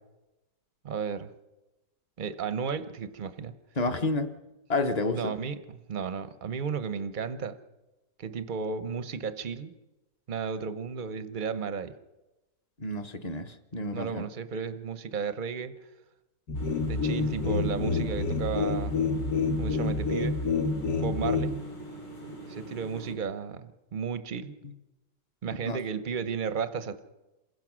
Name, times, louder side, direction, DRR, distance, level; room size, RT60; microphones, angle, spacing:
voice 1, 0.8-1.3 2.2-3.5 5.1-7.6 8.2-9.7 10.3-11.9 13.9-15.7 16.9-19.0 19.6-20.3 21.0-21.6 22.5-24.6 25.4-27.0, right 6 dB, 50° right, 11 dB, 0.5 m, -33 dB
voice 2, 3.8-4.3 4.7-5.3 12.8-14.3 25.6-25.8, left 2 dB, 35° left, 8 dB, 0.6 m, -30 dB
sound 1, 16.5-23.1, right 1 dB, 80° left, 4.6 m, -43 dB
sound 2, 16.5-21.6, left 4 dB, 60° left, 1.6 m, -28 dB
27.0 x 16.0 x 6.1 m, 1.1 s
omnidirectional pair, 2.0 m